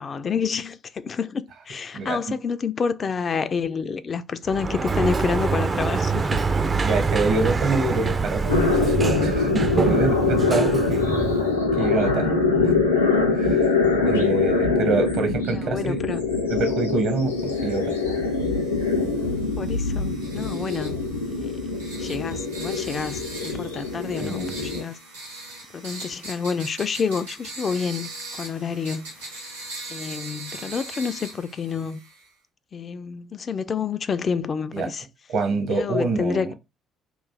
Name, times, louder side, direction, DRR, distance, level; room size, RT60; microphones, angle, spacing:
voice 1, 0.0-6.4 15.5-16.2 19.6-21.0 21.4-21.5 22.0-25.0 25.7-29.1 29.9-32.0 32.7-35.1 35.7-36.5, left 6 dB, 40° left, 0.3 m, -28 dB
Sliding door, 4.5-11.6, right 4 dB, 30° right, 0.4 m, -25 dB
voice 2, 6.8-11.3 11.8-12.3 13.3-13.7 14.1-16.0 16.5-18.0 24.2-24.6 34.7-34.9 35.3-36.5, right 3 dB, 60° right, 0.9 m, -26 dB
sound 1, 8.5-24.8, left 3 dB, 90° left, 0.5 m, -23 dB
sound 2, 17.4-32.3, right 2 dB, 80° right, 1.1 m, -40 dB
3.0 x 2.4 x 3.6 m
figure-of-eight pair, 50°, 0 cm